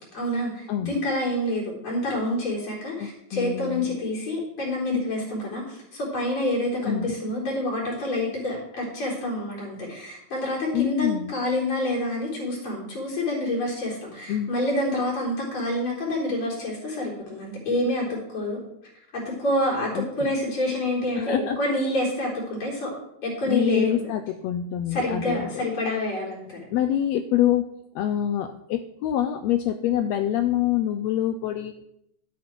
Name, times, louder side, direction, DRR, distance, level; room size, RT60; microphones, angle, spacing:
voice 1, 0.1-18.6 19.1-22.9 23.2-24.0 24.9-26.6, left 1 dB, 40° left, -5 dB, 4.6 m, -27 dB
voice 2, 3.0-3.9 6.8-7.2 10.7-11.3 14.3-14.5 19.9-20.3 21.1-21.6 23.4-25.6 26.7-27.7 27.9-31.9, left 11 dB, 85° left, 9 dB, 1.5 m, -26 dB
12.5 x 8.4 x 4.6 m, 0.79 s
omnidirectional pair, 3.5 m